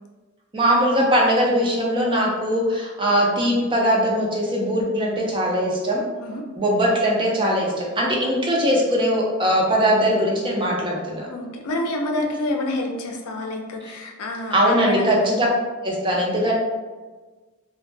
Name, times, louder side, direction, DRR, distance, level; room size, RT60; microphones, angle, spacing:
voice 1, 0.5-6.0 6.6-11.3 14.5-15.5 15.8-16.5, equal, 25° right, -2 dB, 0.5 m, -20 dB
voice 2, 11.3-15.5, left 1 dB, 90° left, 2 dB, 0.4 m, -28 dB
2.1 x 2.0 x 3.2 m, 1.3 s
head